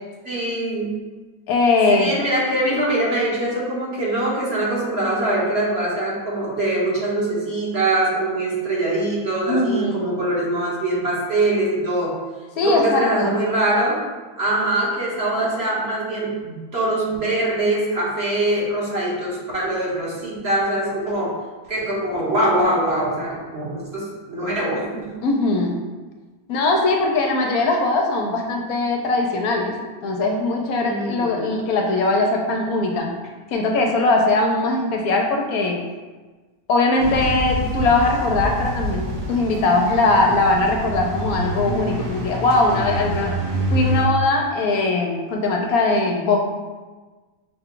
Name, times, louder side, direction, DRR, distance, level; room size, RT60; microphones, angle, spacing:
voice 1, 0.2-0.9 1.9-12.1 12.6-14.0 14.4-21.3 21.7-25.1 30.8-31.4, right 1 dB, 45° right, -6 dB, 1.3 m, -23 dB
voice 2, 1.5-2.1 9.5-10.0 12.6-13.3 25.2-25.7 26.5-29.7 30.0-33.1 33.5-35.8 36.7-43.4 43.7-46.4, left 2 dB, 75° left, 1 dB, 1.0 m, -20 dB
sound 1, 37.0-44.0, equal, 65° right, 1.2 m, -27 dB
5.6 x 2.3 x 3.7 m, 1.3 s
omnidirectional pair, 1.6 m